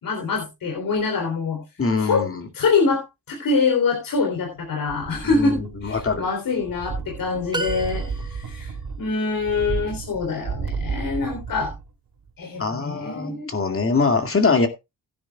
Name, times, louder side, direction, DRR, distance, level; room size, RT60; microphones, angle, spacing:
voice 1, 0.0-1.6 2.0-2.2 2.5-11.7 12.4-13.5, left 4 dB, 65° left, 3.5 m, -25 dB
voice 2, 1.8-2.5 5.3-6.2 12.6-14.7, left 4 dB, 35° left, 2.3 m, -23 dB
sound 1, 4.9-6.3 6.6-11.9 12.3-12.4, right 5 dB, 75° right, 2.3 m, -32 dB
sound 2, 7.5-8.7, right 3 dB, 10° right, 1.0 m, -31 dB
16.0 x 10.0 x 2.3 m
cardioid pair, 85°, 36 cm